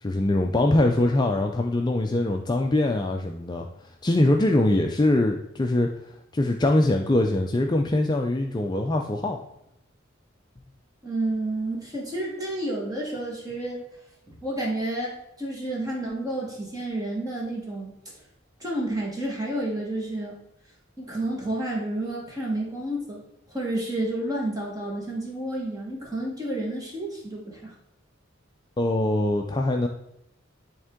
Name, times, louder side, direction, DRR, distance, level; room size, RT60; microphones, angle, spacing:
voice 1, 0.0-3.7 4.0-5.9 6.3-9.4 28.8-29.9, left 1 dB, 20° left, 3 dB, 0.4 m, -23 dB
voice 2, 11.0-13.8 14.4-17.9 18.6-20.3 21.0-23.2 23.5-27.7, right 1 dB, 20° right, -3 dB, 1.4 m, -30 dB
10.5 x 3.7 x 3.6 m, 0.82 s
head